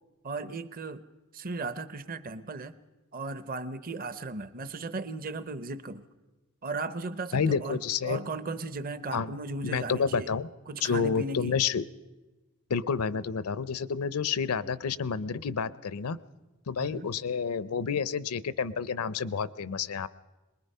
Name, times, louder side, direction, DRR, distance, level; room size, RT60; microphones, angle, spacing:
voice 1, 0.2-1.1 1.3-2.7 3.1-6.1 6.6-7.8 8.0-10.3 10.7-11.6 16.8-17.1, right 3 dB, 40° right, 13 dB, 0.7 m, -36 dB
voice 2, 7.3-8.2 9.1-9.3 9.6-10.5 10.8-11.8 12.7-16.2 16.7-20.1, left 6 dB, 80° left, 17 dB, 0.6 m, -29 dB
23.0 x 20.5 x 5.5 m, 1.1 s
head